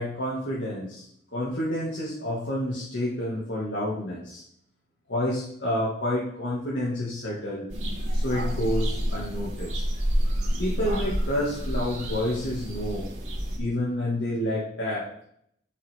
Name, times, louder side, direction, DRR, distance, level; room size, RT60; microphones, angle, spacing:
voice 1, 0.0-4.4 5.1-7.7 8.1-9.8 10.6-13.1 13.6-15.1, left 1 dB, 80° left, -5 dB, 2.0 m, -29 dB
sound 1, 7.7-13.6, equal, 40° right, 2.9 m, -28 dB
9.6 x 7.9 x 3.6 m, 0.69 s
head